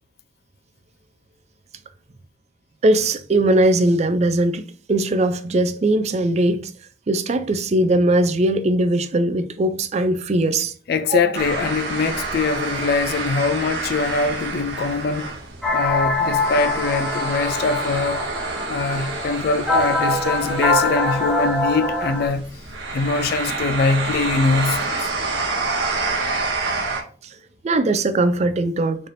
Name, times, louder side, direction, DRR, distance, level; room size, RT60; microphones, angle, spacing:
voice 1, 2.8-4.6 4.9-6.7 7.1-10.7 11.0-11.2 27.6-29.0, right 1 dB, 35° right, 0.4 m, -19 dB
voice 2, 10.9-15.3 15.7-18.2 18.7-22.5 22.9-25.0, left 4 dB, 55° left, 0.3 m, -22 dB
sound 1, 11.3-27.0, right 3 dB, 75° right, 0.9 m, -28 dB
sound 2, 15.6-22.3, left 2 dB, ahead, 0.6 m, -23 dB
4.1 x 3.3 x 2.6 m
head